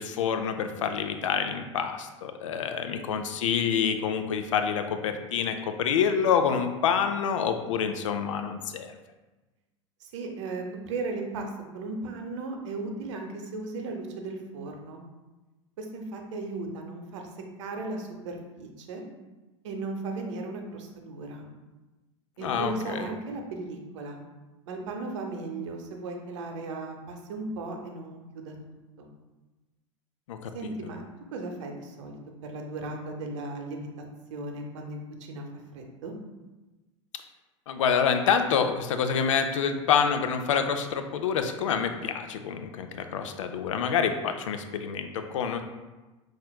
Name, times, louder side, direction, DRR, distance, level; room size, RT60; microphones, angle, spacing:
voice 1, 0.0-8.9 22.4-23.1 30.3-30.7 37.7-45.6, left 7 dB, 75° left, 7 dB, 0.4 m, -27 dB
voice 2, 10.0-15.0 15.8-17.3 17.6-19.0 19.6-21.5 22.4-24.2 24.7-28.6 29.0-29.1 30.5-31.0 31.3-34.0 34.3-35.5 35.7-36.1, right 3 dB, 65° right, 3 dB, 0.7 m, -36 dB
5.6 x 2.5 x 2.2 m, 1.1 s
hypercardioid pair, 90°, 16 cm